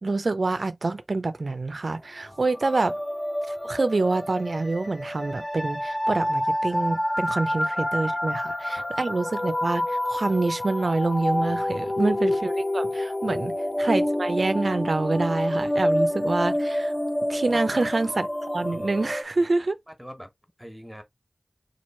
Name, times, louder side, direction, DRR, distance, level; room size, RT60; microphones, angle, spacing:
voice 1, 0.0-3.0 3.5-13.5 13.8-16.9 17.3-19.8, right 3 dB, 70° right, 0.4 m, -26 dB
sound 1, 2.4-19.2, left 1 dB, 25° left, 0.5 m, -28 dB
voice 2, 11.5-12.0 13.2-13.5 17.5-17.8 19.9-20.3 20.6-21.0, equal, ahead, 1.1 m, -43 dB
3.1 x 2.3 x 4.2 m
wide cardioid pair, 55°, 0 cm